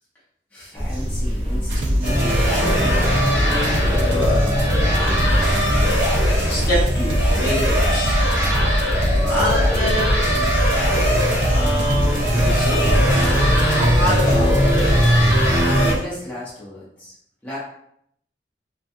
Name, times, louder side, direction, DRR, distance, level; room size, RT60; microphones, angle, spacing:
voice 1, 0.5-3.0 3.2-4.7 15.8-17.1 17.4-17.6, left 1 dB, 10° left, -9 dB, 0.6 m, -34 dB
sound 1, 0.8-16.0, equal, 35° right, 0.7 m, -25 dB
sound 2, 1.7-15.2, equal, 90° right, 0.5 m, -23 dB
sound 3, 2.0-15.9, equal, 65° right, 0.8 m, -21 dB
voice 2, 5.6-8.2 9.3-10.2 11.5-13.1 13.7-14.9, equal, 55° left, -6 dB, 1.0 m, -26 dB
2.4 x 2.2 x 2.6 m, 0.70 s
head